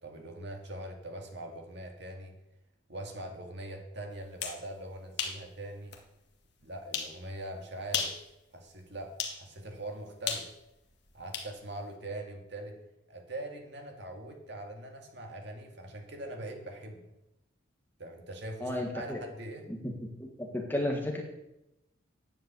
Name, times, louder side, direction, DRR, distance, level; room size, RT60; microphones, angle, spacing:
voice 1, 0.0-2.3 2.9-6.0 6.6-8.2 8.5-10.5 11.1-12.8 13.1-17.1 18.0-19.7, right 1 dB, 55° right, 3 dB, 2.2 m, -42 dB
sound 1, 4.2-4.6 5.2-5.4 5.9-6.0 6.9-7.1 7.8-8.2 9.2-9.4 10.3-11.5, left 7 dB, 55° left, 1.7 m, -34 dB
voice 2, 18.6-19.2 19.7-19.9 20.2-21.2, left 1 dB, 10° left, 1 dB, 1.6 m, -33 dB
10.0 x 7.4 x 8.4 m, 0.88 s
head